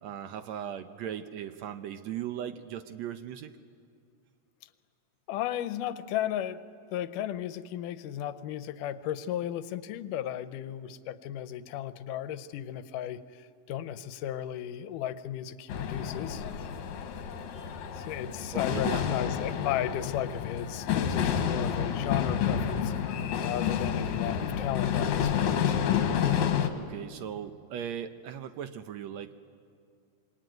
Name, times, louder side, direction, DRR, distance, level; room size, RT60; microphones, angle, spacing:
voice 1, 0.0-3.5 18.5-19.1 26.7-29.5, right 9 dB, 70° right, 9 dB, 1.8 m, -38 dB
voice 2, 5.3-6.6 6.9-13.2 13.7-16.5 18.0-22.9 23.4-25.8, left 11 dB, 85° left, 13 dB, 2.4 m, -35 dB
sound 1, 15.7-26.7, left 8 dB, 70° left, 2.6 m, -29 dB
27.0 x 23.0 x 9.3 m, 2.3 s
omnidirectional pair, 3.6 m